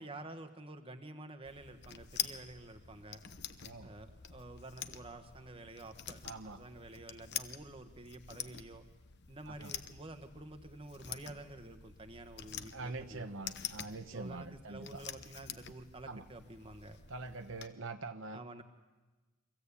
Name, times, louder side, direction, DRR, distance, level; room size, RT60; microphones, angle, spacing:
voice 1, 0.0-3.2 3.8-8.8 9.3-13.3 14.0-17.0 18.3-18.6, right 2 dB, 25° right, 7 dB, 1.2 m, -50 dB
sound 1, 1.4-17.7, left 9 dB, 50° left, 0.9 m, -46 dB
voice 2, 3.6-3.9 6.2-6.6 9.5-9.7 12.7-15.0 16.1-16.2 17.1-18.4, right 3 dB, 60° right, 7 dB, 1.0 m, -44 dB
24.5 x 16.0 x 8.4 m, 1.2 s
head